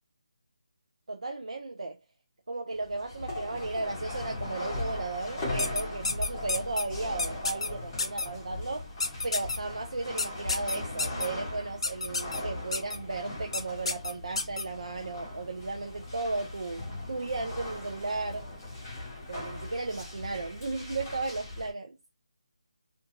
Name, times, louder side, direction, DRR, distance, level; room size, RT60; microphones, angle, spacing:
voice 1, 1.1-2.0 2.5-8.9 9.2-18.5 19.3-21.9, right 3 dB, 85° right, 0.5 m, -35 dB
sound 1, 2.7-21.7, left 2 dB, 10° left, 0.8 m, -39 dB
sound 2, 5.6-6.8 7.2-7.7 8.0-8.3 9.0-9.6 10.2-11.3 11.8-12.4 12.7-13.0 13.5-13.6 13.9-14.6, left 3 dB, 60° left, 0.5 m, -29 dB
2.5 x 2.3 x 2.8 m
figure-of-eight pair, 175°, 3 cm